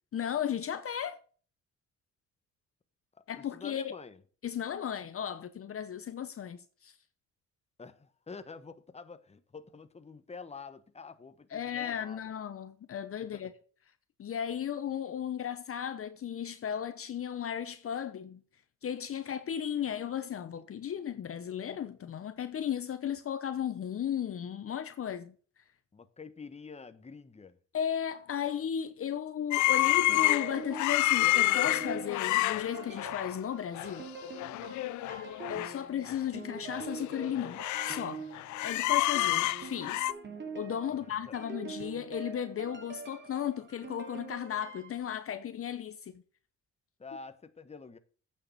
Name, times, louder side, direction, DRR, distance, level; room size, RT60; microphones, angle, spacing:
voice 1, 0.1-1.2 3.3-3.9 4.4-6.9 11.5-13.5 14.2-18.4 18.8-25.3 27.7-34.1 35.5-38.2 38.6-40.1 40.5-46.2, left 9 dB, 50° left, 0.8 m, -35 dB
voice 2, 3.1-4.2 7.8-12.2 13.3-13.5 25.9-27.6 40.9-41.4 47.0-48.0, left 4 dB, 20° left, 1.1 m, -48 dB
sound 1, 29.5-33.4 33.7-34.0 34.2-35.7 36.1-36.2 36.7-38.1 38.3-40.1, left 17 dB, 75° left, 0.4 m, -29 dB
sound 2, 29.7-45.0, right 5 dB, 35° right, 2.6 m, -45 dB
8.8 x 6.7 x 5.4 m
cardioid pair, 90°, 30 cm